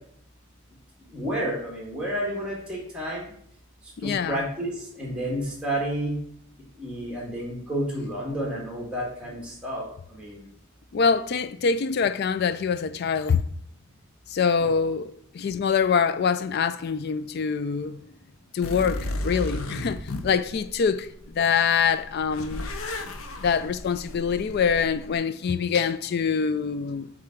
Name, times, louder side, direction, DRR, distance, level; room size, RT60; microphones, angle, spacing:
voice 1, 1.1-3.3 4.0-6.2 6.8-10.5 14.8-14.9, right 1 dB, 5° right, 1.9 m, -31 dB
voice 2, 4.0-4.4 10.9-13.4 14.3-18.0 18.5-22.7 23.4-27.1, left 6 dB, 45° left, 0.3 m, -25 dB
sound 1, 18.6-21.4 21.8-25.1, left 1 dB, 75° left, 0.7 m, -34 dB
7.4 x 3.8 x 4.5 m
head